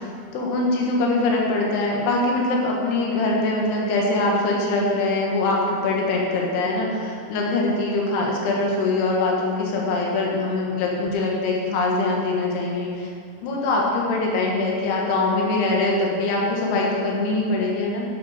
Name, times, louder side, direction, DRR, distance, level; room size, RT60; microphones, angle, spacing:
voice 1, 0.3-13.1 13.4-18.0, left 2 dB, 75° left, -2 dB, 3.5 m, -23 dB
10.5 x 9.4 x 4.2 m, 2.3 s
omnidirectional pair, 4.8 m